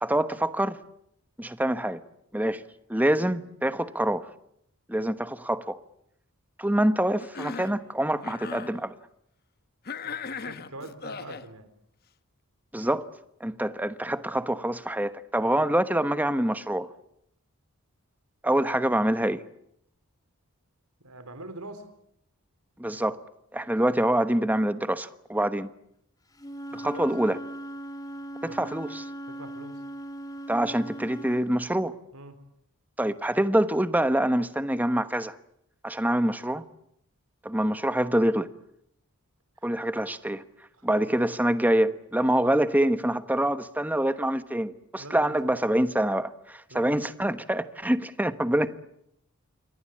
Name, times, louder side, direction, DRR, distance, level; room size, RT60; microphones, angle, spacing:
voice 1, 0.0-0.8 1.4-2.0 2.3-2.6 2.9-4.3 4.9-5.8 6.6-8.9 12.7-13.1 13.4-16.9 18.4-19.4 22.8-23.2 23.5-25.7 26.7-27.4 28.4-29.0 30.5-31.9 33.0-35.3 35.8-36.6 37.4-38.5 39.6-40.4 40.8-48.8, right 1 dB, 5° right, 1.1 m, -25 dB
Cough, 7.2-7.8 8.2-8.7 9.8-11.5, left 5 dB, 45° left, 1.1 m, -37 dB
voice 2, 10.0-11.7 21.0-21.9 26.7-27.1 28.4-28.6 29.3-29.8 32.1-32.4 40.8-40.9 45.0-45.3 46.7-47.1, right 2 dB, 80° right, 4.1 m, -43 dB
Wind instrument woodwind instrument, 26.3-31.4, right 1 dB, 15° left, 2.4 m, -39 dB
28.0 x 23.5 x 8.6 m
head